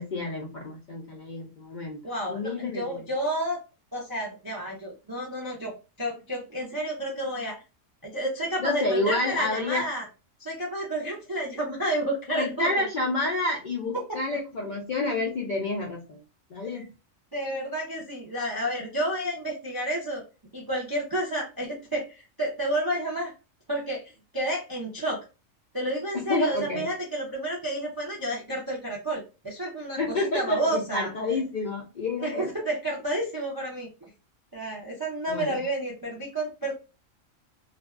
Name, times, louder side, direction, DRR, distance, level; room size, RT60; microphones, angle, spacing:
voice 1, 0.0-2.0 2.3-3.0 8.6-9.9 12.3-16.2 16.5-16.9 26.1-26.8 30.0-32.5 35.3-35.5, left 2 dB, 60° left, -1 dB, 0.5 m, -29 dB
voice 2, 2.0-3.6 3.9-7.6 8.0-10.1 10.4-12.9 14.1-14.4 16.7-16.8 17.3-20.2 20.5-23.3 23.7-24.0 24.3-25.2 25.7-31.1 32.2-33.9 34.5-36.7, right 1 dB, 35° right, -2 dB, 0.3 m, -30 dB
2.5 x 2.2 x 2.3 m, 0.30 s
omnidirectional pair, 1.3 m